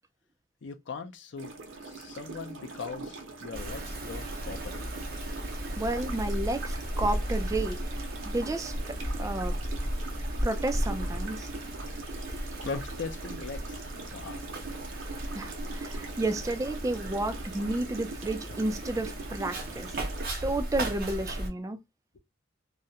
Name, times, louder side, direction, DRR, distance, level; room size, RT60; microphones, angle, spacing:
voice 1, 0.6-1.5 1.8-4.8 12.6-14.5, left 4 dB, 65° left, 0.5 m, -40 dB
sound 1, 1.4-20.2, right 3 dB, 80° right, 0.7 m, -42 dB
Wind, 3.5-21.5, equal, 50° right, 0.7 m, -35 dB
voice 2, 5.8-7.8 8.2-9.6 10.4-11.5 15.3-20.0 20.4-21.8, right 2 dB, 15° right, 0.3 m, -32 dB
2.3 x 2.1 x 2.7 m
head